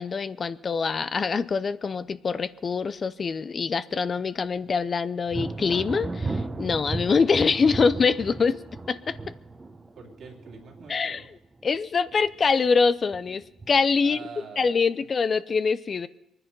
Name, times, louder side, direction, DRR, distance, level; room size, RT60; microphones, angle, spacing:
voice 1, 0.0-8.6 8.9-9.2 10.9-11.2 11.6-14.2 14.6-16.1, left 5 dB, 40° left, 14 dB, 0.6 m, -24 dB
Thunder, 5.3-11.8 12.1-12.7 13.1-14.0, right 2 dB, 25° right, 1.1 m, -35 dB
voice 2, 10.0-11.3 14.0-14.8, right 6 dB, 60° right, 0 dB, 2.8 m, -44 dB
23.0 x 9.9 x 5.3 m, 0.87 s
cardioid pair, 90°, 0 cm